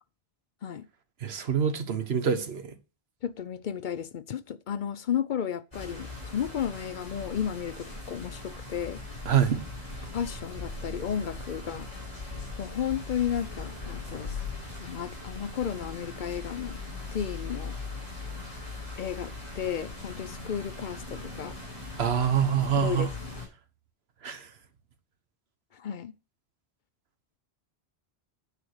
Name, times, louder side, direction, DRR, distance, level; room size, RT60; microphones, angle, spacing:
voice 1, 1.2-2.8 9.2-9.6 22.0-23.1 24.2-24.5, right 7 dB, 85° right, 1.3 m, -26 dB
voice 2, 3.2-9.0 10.1-11.9 12.6-14.4 14.8-16.8 17.1-17.7 19.0-21.6 22.8-23.1 25.7-26.1, left 9 dB, 60° left, 0.6 m, -33 dB
sound 1, 5.7-23.5, left 3 dB, 40° left, 5.2 m, -40 dB
9.1 x 4.9 x 6.4 m
omnidirectional pair, 1.0 m